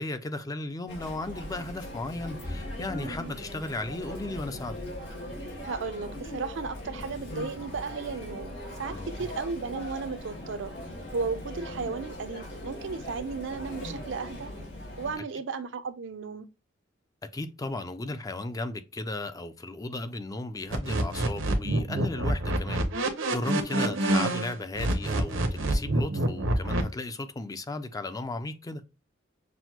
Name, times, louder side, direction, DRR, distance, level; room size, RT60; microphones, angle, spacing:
voice 1, 0.0-4.8 8.9-9.1 17.2-28.8, left 2 dB, 20° left, 0.4 m, -35 dB
Chatter, 0.9-15.2, left 1 dB, 65° left, 2.0 m, -39 dB
voice 2, 3.0-3.3 5.6-10.7 11.1-14.5 15.0-16.5 23.7-24.0, right 4 dB, 70° right, 0.5 m, -35 dB
sound 1, 20.7-26.8, right 1 dB, 85° right, 0.8 m, -27 dB
6.1 x 2.1 x 2.9 m
head